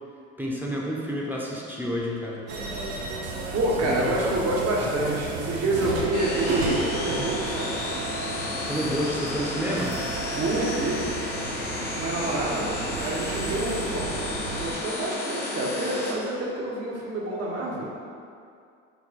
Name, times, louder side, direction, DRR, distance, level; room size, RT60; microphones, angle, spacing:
voice 1, 0.4-2.4 3.8-4.0 8.7-10.0, equal, 5° right, -4 dB, 0.8 m, -29 dB
sound 1, 2.5-14.7, right 4 dB, 90° right, 0.6 m, -34 dB
voice 2, 3.5-7.8 10.4-11.1 11.9-14.1 14.6-17.9, right 2 dB, 50° right, -4 dB, 1.1 m, -27 dB
sound 2, 6.1-16.1, left 2 dB, 85° left, 0.8 m, -32 dB
4.7 x 2.2 x 4.1 m, 2.4 s
hypercardioid pair, 70°, 32 cm